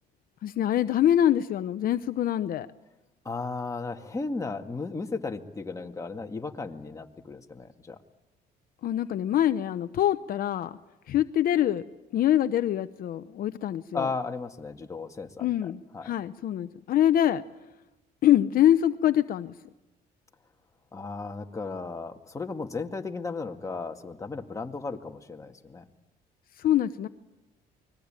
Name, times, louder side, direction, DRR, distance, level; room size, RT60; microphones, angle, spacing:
voice 1, 0.4-2.7 8.8-10.7 11.1-11.8 12.1-14.1 15.4-17.4 18.2-19.5 26.6-27.1, left 11 dB, 60° left, 11 dB, 0.8 m, -24 dB
voice 2, 3.3-8.0 13.9-16.1 20.9-25.8, left 4 dB, 20° left, 4 dB, 2.0 m, -35 dB
29.0 x 21.5 x 9.0 m, 1.1 s
cardioid pair, 110°, 17 cm